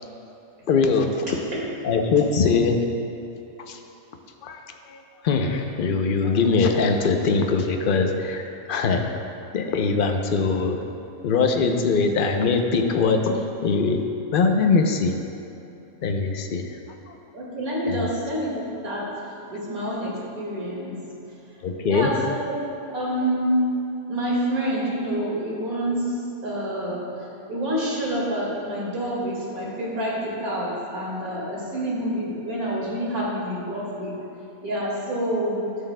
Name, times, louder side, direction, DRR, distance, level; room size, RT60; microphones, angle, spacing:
voice 1, 0.7-1.3 1.8-2.8 3.7-3.8 4.4-5.0 5.2-9.0 9.5-10.8 11.2-14.0 14.3-15.1 16.0-16.7 17.9-18.1 21.6-22.1, left 4 dB, 50° left, 4 dB, 0.6 m, -22 dB
voice 2, 17.3-20.9 21.8-23.5 24.1-26.2 26.4-34.1 34.6-35.7, right 1 dB, 85° right, -5 dB, 2.5 m, -28 dB
13.0 x 8.3 x 2.2 m, 2.9 s
omnidirectional pair, 1.5 m